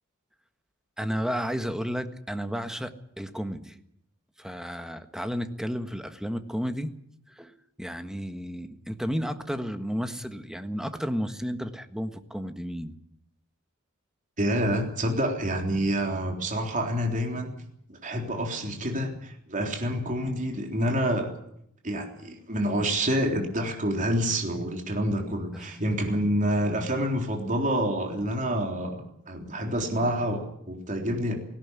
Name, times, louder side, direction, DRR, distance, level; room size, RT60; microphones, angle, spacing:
voice 1, 1.0-3.8 4.4-6.9 7.3-12.9 25.5-25.6, equal, 5° right, 8 dB, 1.5 m, -32 dB
voice 2, 14.4-17.5 17.9-21.3 21.8-31.3, equal, 40° right, 2 dB, 3.7 m, -28 dB
18.5 x 17.0 x 9.8 m, 0.72 s
head